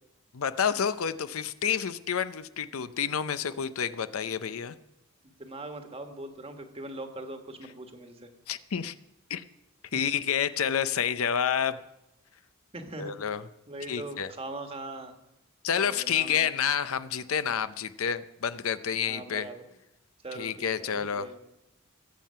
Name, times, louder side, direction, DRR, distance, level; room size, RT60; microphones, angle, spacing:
voice 1, 0.3-4.7 8.5-8.9 9.3-9.4 9.9-11.8 13.0-13.4 13.9-14.3 15.6-19.5 20.4-21.4, left 8 dB, 75° left, 13 dB, 0.6 m, -29 dB
voice 2, 5.2-8.3 9.9-10.0 12.7-13.1 13.7-15.1 15.9-16.5 19.1-19.6 20.2-21.4, right 2 dB, 25° right, 6 dB, 1.4 m, -41 dB
21.5 x 7.5 x 5.6 m, 0.89 s
head